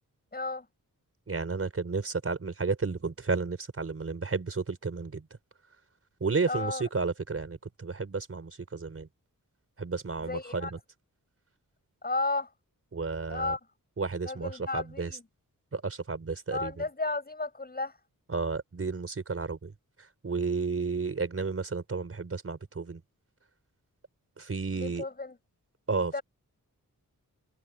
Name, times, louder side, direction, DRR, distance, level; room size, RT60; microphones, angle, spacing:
voice 1, 0.3-0.7 6.5-6.8 10.2-10.7 12.0-12.5 13.3-13.6 14.2-15.2 16.5-18.0 24.7-25.4 26.1-26.2, left 3 dB, 25° left, 7.9 m, -33 dB
voice 2, 1.3-5.3 6.2-9.1 9.8-10.8 12.9-13.5 14.0-15.1 15.7-16.7 18.3-19.7 20.2-23.0 24.4-25.0 25.9-26.2, right 4 dB, 40° right, 4.7 m, -32 dB
wide cardioid pair, 170°, 34 cm